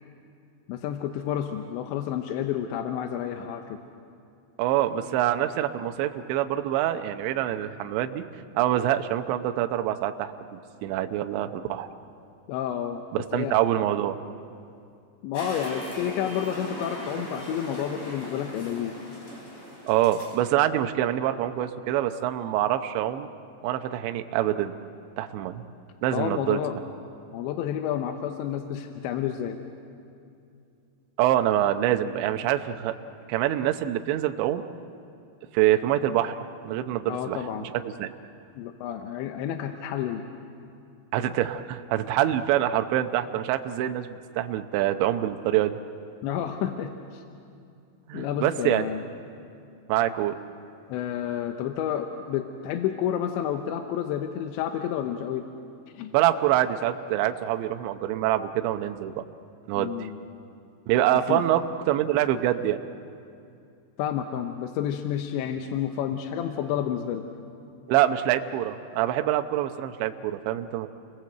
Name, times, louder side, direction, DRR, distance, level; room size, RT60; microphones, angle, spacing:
voice 1, 0.7-3.8 12.5-13.6 15.2-19.0 26.1-26.8 27.3-29.6 37.1-37.7 38.6-40.2 46.2-47.2 48.1-49.0 50.9-55.5 55.9-56.1 59.8-60.2 61.3-61.4 64.0-67.3, left 10 dB, 75° left, 5 dB, 2.9 m, -30 dB
voice 2, 4.6-8.2 8.5-11.9 13.1-14.2 19.9-23.3 23.6-24.7 25.2-25.6 26.0-26.6 31.2-33.0 33.3-34.6 35.5-36.3 36.6-38.1 41.1-45.8 48.1-48.9 49.9-50.4 56.1-59.2 59.7-60.1 60.9-61.6 61.9-62.8 67.9-70.9, right 12 dB, 75° right, 7 dB, 2.9 m, -25 dB
sound 1, 15.3-20.4, equal, 35° left, 5.1 m, -39 dB
29.5 x 21.5 x 7.8 m, 2.5 s
omnidirectional pair, 5.9 m